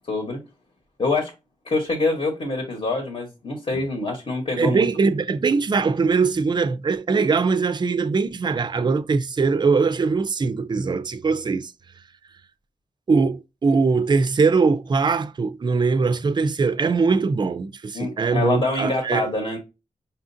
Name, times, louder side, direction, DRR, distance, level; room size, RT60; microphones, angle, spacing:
voice 1, 0.1-0.4 1.0-1.3 1.6-4.9 17.9-19.6, left 3 dB, 45° left, 1.2 m, -25 dB
voice 2, 4.6-11.7 13.1-19.3, right 4 dB, 35° right, 0.4 m, -21 dB
5.5 x 2.5 x 2.6 m
wide cardioid pair, 100°, 14 cm